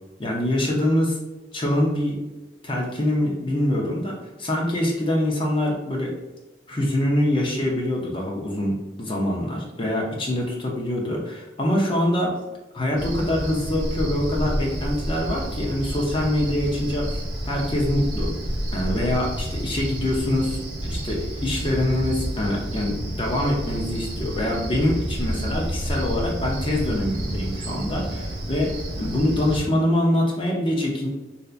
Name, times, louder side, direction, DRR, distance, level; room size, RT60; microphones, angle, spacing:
voice 1, 0.2-1.2 1.5-2.2 2.6-6.2 6.7-12.3 12.7-18.3 18.7-31.1, left 1 dB, 25° left, -1 dB, 0.6 m, -24 dB
Cricket, 13.0-29.6, right 1 dB, 50° right, 1.4 m, -30 dB
3.3 x 2.7 x 2.4 m, 1.1 s
head